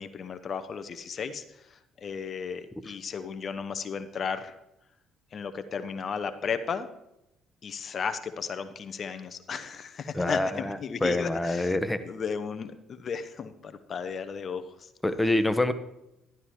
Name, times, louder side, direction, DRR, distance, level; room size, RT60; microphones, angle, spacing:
voice 1, 0.0-4.6 5.3-6.9 7.6-11.8 12.0-14.9, left 6 dB, 45° left, 10 dB, 0.6 m, -35 dB
voice 2, 10.1-12.0 15.0-15.7, left 2 dB, 10° left, 12 dB, 0.8 m, -26 dB
11.5 x 11.0 x 3.1 m, 0.88 s
figure-of-eight pair, 45°, 0 cm